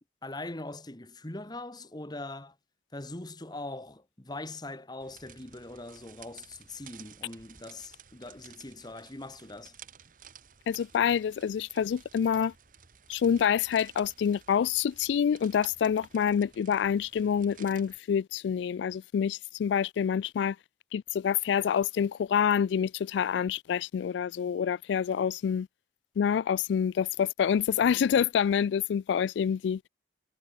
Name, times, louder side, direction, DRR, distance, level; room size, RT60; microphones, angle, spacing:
voice 1, 0.2-2.5 2.9-9.7, left 2 dB, 25° left, 1.5 m, -41 dB
sound 1, 5.0-18.0, right 8 dB, 50° right, 1.5 m, -54 dB
voice 2, 10.7-12.5 13.1-20.6 20.9-25.7 26.2-29.8, left 8 dB, 85° left, 0.3 m, -27 dB
head